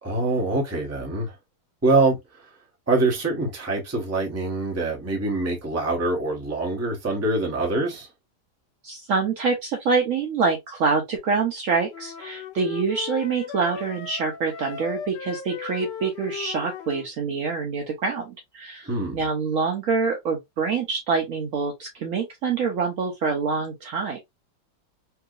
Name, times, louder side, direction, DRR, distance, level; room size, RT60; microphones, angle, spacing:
voice 1, 0.0-1.3 1.8-2.2 2.9-8.1 18.9-19.2, right 2 dB, 20° right, 0.4 m, -24 dB
voice 2, 8.8-24.2, right 5 dB, 70° right, 0.7 m, -26 dB
sound 1, 11.9-17.1, left 7 dB, 75° left, 1.2 m, -37 dB
3.4 x 2.8 x 2.3 m
omnidirectional pair, 2.1 m